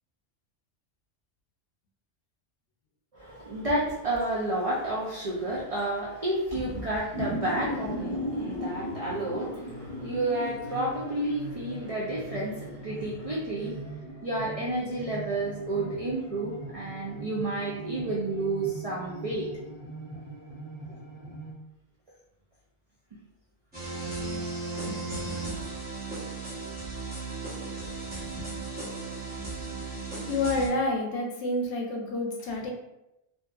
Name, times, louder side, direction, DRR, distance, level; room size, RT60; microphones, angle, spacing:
voice 1, 3.1-13.8 14.2-19.5, right 2 dB, 65° right, -5 dB, 0.3 m, -31 dB
sound 1, 6.8-21.5, equal, 30° right, 1.0 m, -38 dB
sound 2, 23.7-30.7, right 3 dB, 10° right, 0.6 m, -35 dB
voice 2, 24.1-24.4 24.8-25.3 28.0-28.6 29.4-29.9 30.3-32.7, left 2 dB, 80° left, 0 dB, 0.9 m, -31 dB
2.6 x 2.4 x 2.3 m, 0.88 s
omnidirectional pair, 1.2 m